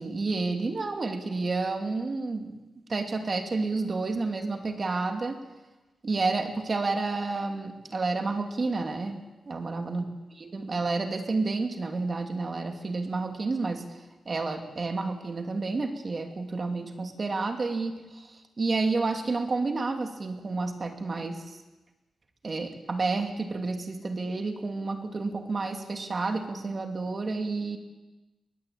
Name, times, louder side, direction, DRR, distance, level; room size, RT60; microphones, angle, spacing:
voice 1, 0.0-2.5 2.9-5.4 6.0-10.0 10.4-13.8 14.3-21.6 22.4-27.8, right 3 dB, 35° right, 5 dB, 2.7 m, -30 dB
22.5 x 18.5 x 8.8 m, 1.1 s
wide cardioid pair, 150°, 0 cm